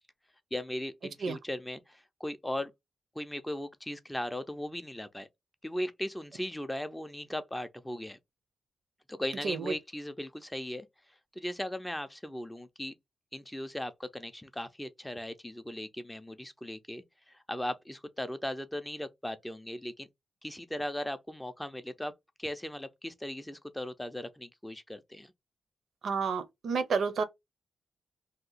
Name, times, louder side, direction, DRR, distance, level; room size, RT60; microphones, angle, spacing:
voice 1, 0.5-2.7 3.2-5.3 5.6-8.2 9.1-10.9 11.4-12.9 13.3-20.1 20.4-22.1 22.4-25.3, left 1 dB, 5° left, 0.4 m, -38 dB
voice 2, 26.0-27.2, right 5 dB, 75° right, 0.6 m, -30 dB
2.8 x 2.2 x 3.9 m
wide cardioid pair, 135°, 0 cm